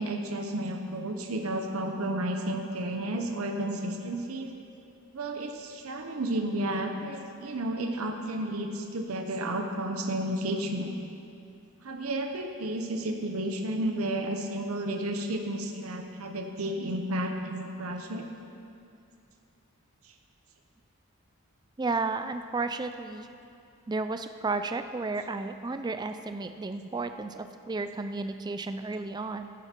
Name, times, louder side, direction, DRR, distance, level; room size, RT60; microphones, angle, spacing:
voice 1, 0.0-4.5 5.1-10.9 11.8-18.3, right 1 dB, 80° right, 4 dB, 0.9 m, -32 dB
voice 2, 21.8-23.3 23.9-29.5, right 3 dB, 20° right, 9 dB, 0.3 m, -33 dB
14.5 x 10.0 x 4.5 m, 2.6 s
head